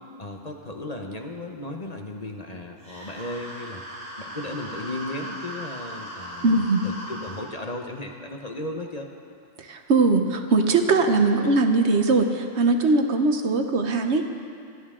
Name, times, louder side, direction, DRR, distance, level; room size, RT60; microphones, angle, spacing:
voice 1, 0.2-3.8 4.2-9.1, left 1 dB, 35° left, 2 dB, 1.0 m, -35 dB
sound 1, 2.8-7.4, equal, 5° left, 4.4 m, -38 dB
voice 2, 6.4-6.8 9.6-14.3, right 3 dB, 65° right, 5 dB, 1.2 m, -21 dB
25.5 x 11.5 x 3.7 m, 2.4 s
omnidirectional pair, 1.3 m